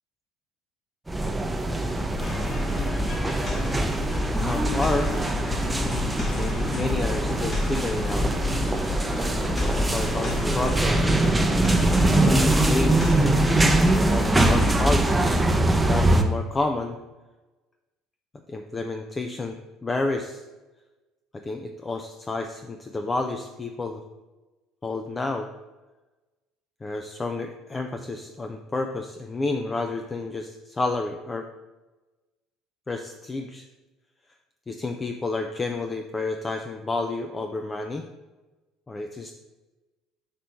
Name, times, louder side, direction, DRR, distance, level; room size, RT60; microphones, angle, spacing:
sound 1, 1.1-16.2, right 1 dB, 10° right, 0.7 m, -23 dB
sound 2, 2.2-14.9, left 3 dB, 40° left, 1.4 m, -31 dB
voice 1, 4.3-5.1 6.3-8.3 9.7-11.4 12.2-13.5 13.9-17.0 18.5-19.6 19.8-20.4 21.3-24.0 24.8-25.5 26.8-31.5 32.9-33.6 34.7-38.1 38.9-39.3, left 3 dB, 25° left, 5 dB, 0.4 m, -30 dB
6.0 x 3.1 x 5.4 m, 1.1 s
hypercardioid pair, 60°, 0 cm